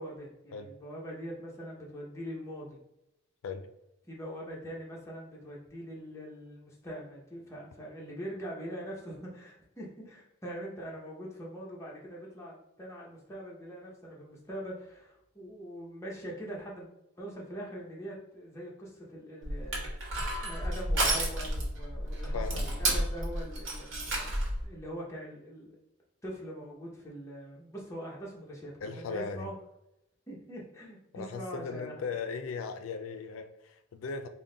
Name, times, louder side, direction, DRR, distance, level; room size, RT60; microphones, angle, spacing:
voice 1, 0.0-2.8 4.1-16.9 17.2-20.1 20.4-24.4 24.6-25.7 26.2-29.6 30.3-31.9, equal, 15° left, -4 dB, 0.7 m, -43 dB
Crushing, 19.4-24.6, right 1 dB, 70° right, 1.0 m, -31 dB
voice 2, 22.3-22.6 28.8-29.5 31.1-34.3, left 5 dB, 90° left, 8 dB, 0.3 m, -38 dB
3.7 x 2.1 x 3.8 m, 0.87 s
head